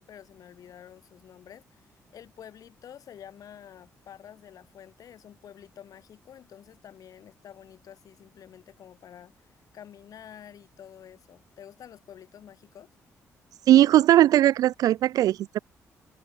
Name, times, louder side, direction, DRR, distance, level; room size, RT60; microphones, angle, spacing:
voice 1, 0.0-9.5 9.7-12.9, left 9 dB, 70° left, 4.9 m, -49 dB
voice 2, 13.7-15.6, right 13 dB, 75° right, 0.4 m, -19 dB
supercardioid pair, 65°, 6 cm